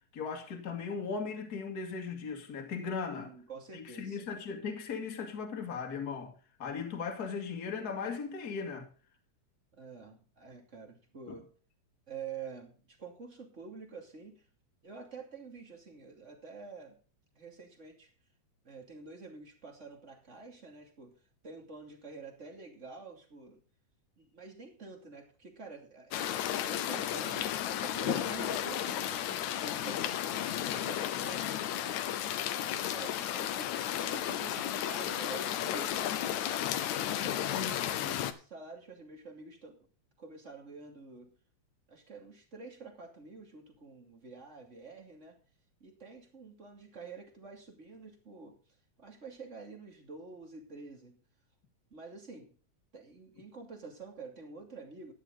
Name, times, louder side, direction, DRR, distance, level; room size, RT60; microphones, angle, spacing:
voice 1, 0.1-3.3 3.7-6.3 6.6-8.9 11.3-11.4 37.5-38.2, left 5 dB, 35° left, 2.4 m, -38 dB
voice 2, 3.1-4.2 9.7-11.4 12.1-14.4 14.8-17.0 17.4-18.1 18.6-23.6 24.2-26.3 26.7-31.4 31.8-36.3 36.6-37.9 38.3-39.9 40.2-41.4 41.9-45.4 45.8-48.6 49.0-51.2 51.9-52.5 52.9-55.1, right 4 dB, 25° right, 2.7 m, -48 dB
sound 1, 26.1-38.3, left 11 dB, 80° left, 2.3 m, -33 dB
13.5 x 10.5 x 4.0 m
omnidirectional pair, 3.4 m